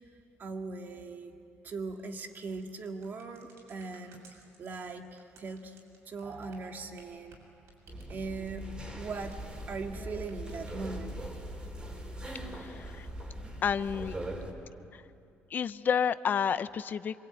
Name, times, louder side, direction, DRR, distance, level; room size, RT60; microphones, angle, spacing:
voice 1, 0.4-1.4 1.6-5.8 6.1-7.5 8.1-8.6 8.9-9.4 9.7-11.2 12.0-12.1, right 4 dB, 45° right, 4 dB, 2.2 m, -40 dB
knuckle cracks, 2.2-10.0 10.2-11.2, right 3 dB, 75° right, 7.1 m, -59 dB
sound 1, 6.2-7.7, right 3 dB, 60° right, 5.0 m, -50 dB
sound 2, 7.9-14.5, right 1 dB, 20° right, 3.7 m, -41 dB
voice 2, 12.5-13.1 13.6-14.2 15.5-17.2, left 7 dB, 45° left, 14 dB, 0.7 m, -30 dB
27.0 x 24.5 x 9.2 m, 2.7 s
cardioid pair, 125°, 5 cm